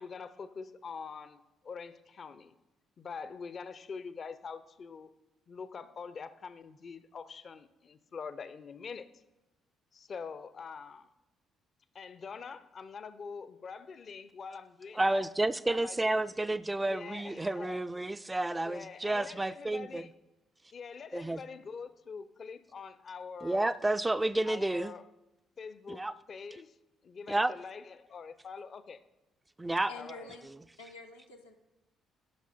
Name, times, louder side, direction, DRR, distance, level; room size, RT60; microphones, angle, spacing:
voice 1, 0.0-2.5 3.0-5.1 5.5-9.1 9.9-11.1 11.9-15.3 15.7-16.2 16.9-17.8 18.6-20.1 20.7-23.7 24.5-25.0 25.6-26.7 27.0-29.0 29.9-30.3, left 5 dB, 45° left, 14 dB, 0.5 m, -44 dB
voice 2, 14.9-20.1 21.1-21.5 23.4-24.9 25.9-26.1 27.3-27.5 29.6-29.9, right 2 dB, 15° right, 12 dB, 0.3 m, -30 dB
voice 3, 29.9-30.5 30.8-31.5, left 3 dB, 85° left, 1 dB, 0.7 m, -48 dB
12.0 x 5.9 x 4.3 m, 1.0 s
figure-of-eight pair, 45°, 0 cm